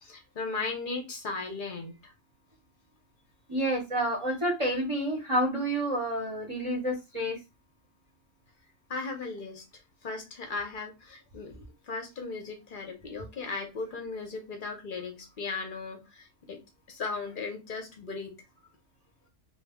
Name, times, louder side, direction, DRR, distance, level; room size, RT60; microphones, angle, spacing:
voice 1, 0.0-2.1 8.9-9.6 10.0-16.6 16.9-18.3, left 4 dB, 50° left, 0.7 m, -37 dB
voice 2, 3.5-7.4, right 1 dB, 30° right, 0.7 m, -29 dB
2.3 x 2.1 x 3.4 m
omnidirectional pair, 1.4 m